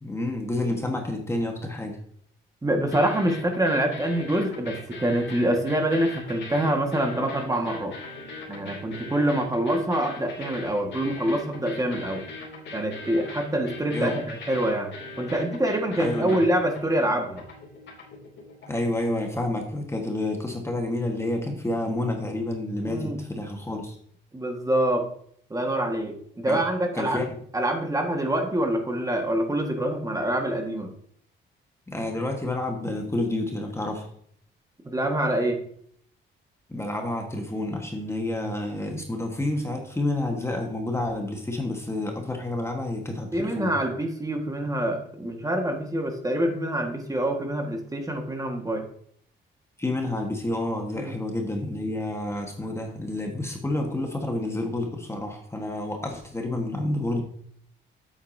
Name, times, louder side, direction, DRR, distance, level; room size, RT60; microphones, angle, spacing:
voice 1, 0.0-2.0 13.9-14.2 16.0-16.4 18.7-23.9 26.5-26.6 26.9-27.4 31.9-34.1 36.7-43.7 49.8-57.2, left 1 dB, 15° left, 2 dB, 1.4 m, -29 dB
voice 2, 2.6-7.9 8.5-12.2 12.7-14.9 15.2-17.4 22.8-23.2 24.3-25.1 25.5-27.2 27.5-30.9 34.9-35.6 43.3-48.9 51.0-51.2, right 1 dB, 15° right, 3 dB, 1.6 m, -26 dB
sound 1, 2.8-19.0, left 2 dB, 65° left, 2.7 m, -41 dB
8.2 x 8.2 x 2.7 m, 0.64 s
cardioid pair, 90°, 20 cm